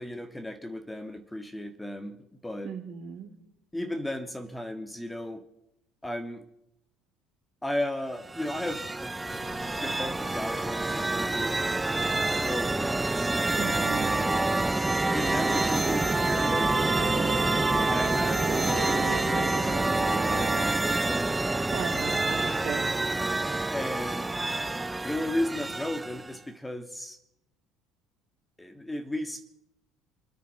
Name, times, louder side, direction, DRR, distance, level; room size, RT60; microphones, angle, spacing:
voice 1, 0.0-2.2 2.4-2.8 3.7-5.4 6.0-6.4 7.6-9.1 9.8-11.6 12.4-13.8 15.1-16.8 17.9-21.4 23.7-24.4 25.0-27.2 28.6-29.4, left 1 dB, 10° left, 8 dB, 1.6 m, -35 dB
voice 2, 2.6-3.3 13.5-14.3 21.7-22.9, right 7 dB, 60° right, 3 dB, 2.8 m, -37 dB
sound 1, 8.2-26.4, right 2 dB, 15° right, 0.4 m, -27 dB
sound 2, 9.3-14.6, left 3 dB, 55° left, 6.5 m, -49 dB
sound 3, 15.2-20.6, right 13 dB, 85° right, 1.0 m, -39 dB
27.0 x 10.5 x 4.2 m, 0.81 s
supercardioid pair, 95°, 0 cm